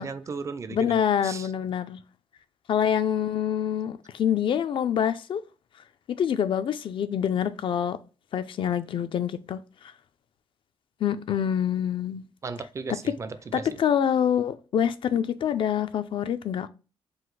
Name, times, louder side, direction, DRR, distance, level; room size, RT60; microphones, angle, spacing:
voice 1, 0.0-1.0 1.2-1.5 12.4-13.8, right 4 dB, 30° right, 0.4 m, -36 dB
voice 2, 0.7-2.0 2.7-5.5 6.2-8.0 8.3-9.6 11.0-12.2 13.5-16.7, left 9 dB, 55° left, 0.4 m, -26 dB
3.9 x 2.5 x 4.6 m
wide cardioid pair, 135°, 10 cm